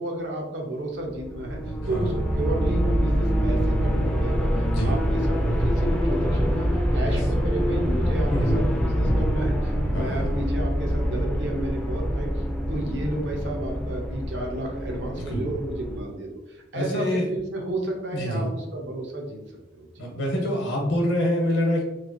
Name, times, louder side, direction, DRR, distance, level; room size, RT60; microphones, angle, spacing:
voice 1, 0.0-12.3 12.7-19.4 19.7-20.1, right 1 dB, 70° right, 1 dB, 0.6 m, -32 dB
sound 1, 1.1-16.0, equal, 5° left, 0.3 m, -25 dB
voice 2, 1.8-2.2 4.7-5.0 7.1-7.2 8.3-8.6 9.9-10.4 15.2-15.5 16.7-17.3 18.1-18.4 20.0-21.8, equal, 80° left, 0 dB, 0.9 m, -26 dB
3.1 x 2.4 x 2.5 m, 0.97 s
head